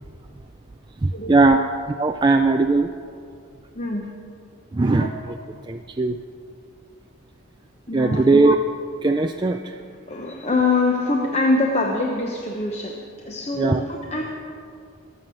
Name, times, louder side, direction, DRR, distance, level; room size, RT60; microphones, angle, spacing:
voice 1, 1.0-1.6 2.0-2.9 4.7-5.4 5.7-6.2 7.9-8.6 9.0-9.8 11.1-11.3 13.6-13.8, right 3 dB, 20° right, 5 dB, 0.3 m, -19 dB
voice 2, 3.7-4.1 5.0-5.1 7.9-8.2 10.1-13.0 13.2-14.2, left 3 dB, 30° left, 1 dB, 1.0 m, -23 dB
22.0 x 7.6 x 6.4 m, 2.3 s
head